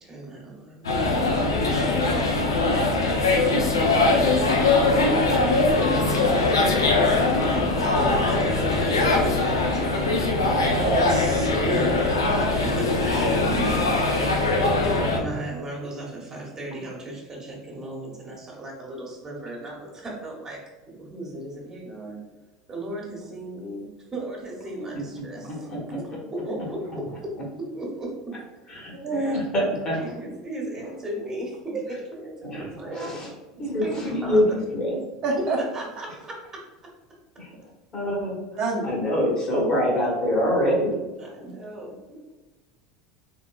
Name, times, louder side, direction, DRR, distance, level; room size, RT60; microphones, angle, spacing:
voice 1, 0.0-1.8 2.1-2.2 5.4-6.8 7.4-10.1 11.7-11.9 12.6-14.4 15.1-20.6 20.9-22.3 22.7-27.3 27.6-28.3 28.7-29.4 30.0-33.3 33.8-34.4 35.4-35.5 35.7-36.6 41.2-42.3, right 1 dB, 25° right, -2 dB, 1.5 m, -36 dB
sound 1, 0.8-15.2, left 2 dB, 85° left, 0.6 m, -21 dB
voice 2, 10.6-11.9 29.0-29.3 35.2-35.6 38.6-38.9, right 2 dB, 50° right, -2 dB, 0.9 m, -28 dB
voice 3, 25.7-26.2 28.7-30.1 32.4-33.3 33.6-34.5 34.7-35.0 37.4-37.5 37.9-38.3 38.8-41.0, equal, 35° left, -2 dB, 1.5 m, -25 dB
3.8 x 3.6 x 2.4 m, 1.2 s
hypercardioid pair, 75°, 2 cm